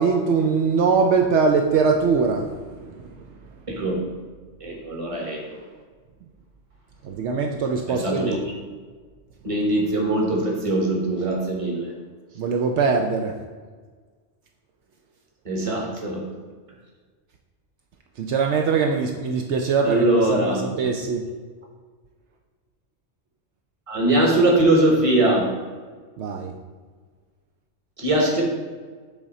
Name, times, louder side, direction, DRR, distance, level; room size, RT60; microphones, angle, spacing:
voice 1, 0.0-2.6 2.8-3.1 7.0-8.4 12.4-13.3 18.2-21.2 26.2-26.5, right 5 dB, 75° right, 2 dB, 0.8 m, -22 dB
voice 2, 3.7-4.0 4.6-5.4 7.9-8.4 9.4-11.9 15.4-16.2 19.8-20.7 23.9-25.5 28.0-28.4, right 1 dB, 30° right, -1 dB, 1.2 m, -21 dB
8.3 x 3.6 x 4.2 m, 1.5 s
omnidirectional pair, 1.2 m